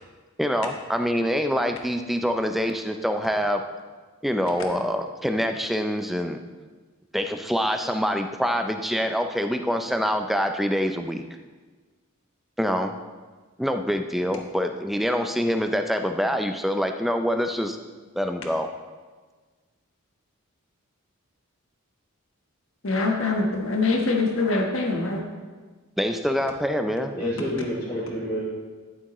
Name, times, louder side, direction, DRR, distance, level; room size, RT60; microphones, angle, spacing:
voice 1, 0.4-3.6 4.2-6.4 7.1-11.2 12.6-12.9 13.6-17.8 18.2-18.7 26.0-27.3, equal, ahead, 6 dB, 0.4 m, -25 dB
voice 2, 22.8-25.2, left 3 dB, 60° left, 1 dB, 1.3 m, -24 dB
voice 3, 27.1-28.4, left 1 dB, 20° left, -11 dB, 2.3 m, -28 dB
11.5 x 7.3 x 3.1 m, 1.4 s
head